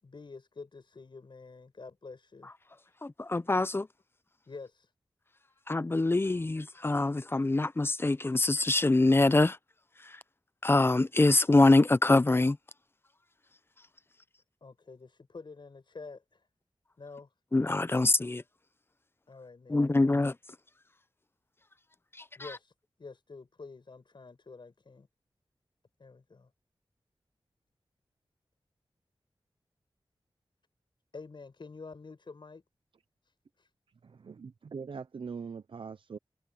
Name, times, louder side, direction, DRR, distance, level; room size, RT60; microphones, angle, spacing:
voice 1, 0.0-2.5 2.8-2.9 4.5-4.9 14.6-16.5 17.0-17.3 19.3-19.9 22.4-22.7 23.0-25.1 26.0-26.5 31.1-32.6 33.6-33.7, left 4 dB, 60° left, 6.9 m, -48 dB
voice 2, 3.0-3.9 5.7-9.6 10.0-10.2 10.6-12.6 17.5-18.4 19.7-20.3 22.4-22.5, left 2 dB, 25° left, 0.5 m, -24 dB
voice 3, 34.0-36.2, right 5 dB, 65° right, 0.6 m, -42 dB
wide cardioid pair, 100°, 9 cm